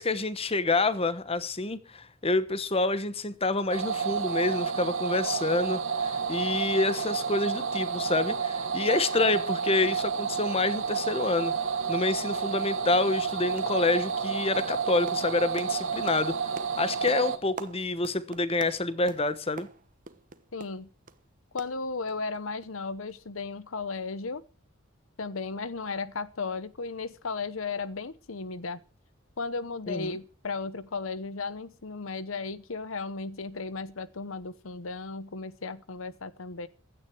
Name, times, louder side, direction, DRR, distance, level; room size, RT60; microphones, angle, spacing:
voice 1, 0.0-16.3 16.8-19.7 29.9-30.2, left 2 dB, 30° left, 1.1 m, -28 dB
sound 1, 3.7-17.4, right 6 dB, 65° right, 2.1 m, -30 dB
sound 2, 12.6-12.8 13.0-13.3 13.6-13.8 14.1-21.2 21.6-22.4 22.6-22.7 23.1-23.2, right 4 dB, 40° right, 1.1 m, -47 dB
voice 2, 20.5-20.9 21.5-24.4 25.2-28.8 29.4-36.7, left 4 dB, 75° left, 0.9 m, -35 dB
16.0 x 12.0 x 4.6 m
head